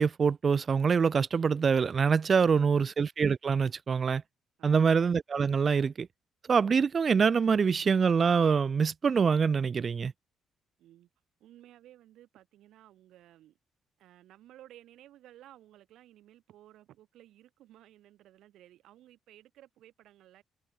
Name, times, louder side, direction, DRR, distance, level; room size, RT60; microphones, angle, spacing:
voice 1, 0.0-4.2 4.6-6.1 6.5-10.1, right 6 dB, 40° right, 0.6 m, -25 dB
voice 2, 4.6-4.9 10.8-11.1 11.4-13.6 14.0-20.4, right 13 dB, 80° right, 4.2 m, -56 dB
cardioid pair, 90°, 0 cm